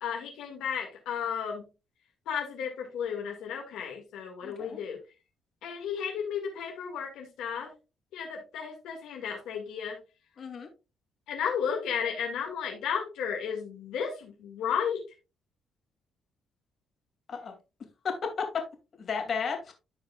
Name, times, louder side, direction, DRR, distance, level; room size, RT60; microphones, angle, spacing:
voice 1, 0.0-1.7 2.3-5.0 5.6-7.7 8.1-10.0 11.3-15.0, left 7 dB, 90° left, 1 dB, 1.9 m, -33 dB
voice 2, 4.4-4.8 10.4-10.7 17.3-17.5 18.0-18.5 19.0-19.7, left 5 dB, 50° left, 3 dB, 2.5 m, -33 dB
14.5 x 4.8 x 2.3 m, 0.29 s
cardioid pair, 90°, 0 cm